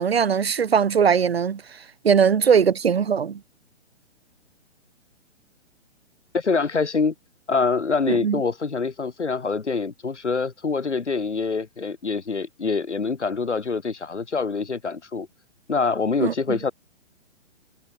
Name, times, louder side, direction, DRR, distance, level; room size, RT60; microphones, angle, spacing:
voice 1, 0.0-1.6 2.0-3.4 8.1-8.4 16.2-16.6, right 7 dB, 55° right, 3.6 m, -20 dB
voice 2, 6.3-7.1 7.5-15.3 15.7-16.7, left 4 dB, 65° left, 4.6 m, -25 dB
figure-of-eight pair, 130°, 37 cm